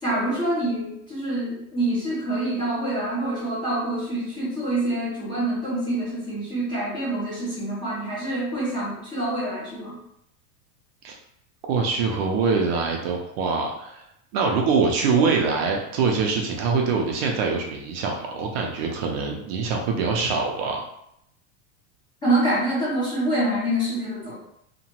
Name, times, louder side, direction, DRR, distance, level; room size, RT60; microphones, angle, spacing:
voice 1, 0.0-10.0 22.2-24.3, right 1 dB, 10° left, -8 dB, 0.4 m, -26 dB
voice 2, 11.7-14.1 14.3-20.8, right 4 dB, 50° right, 1 dB, 0.4 m, -24 dB
2.9 x 2.1 x 2.8 m, 0.76 s
supercardioid pair, 175°, 42 cm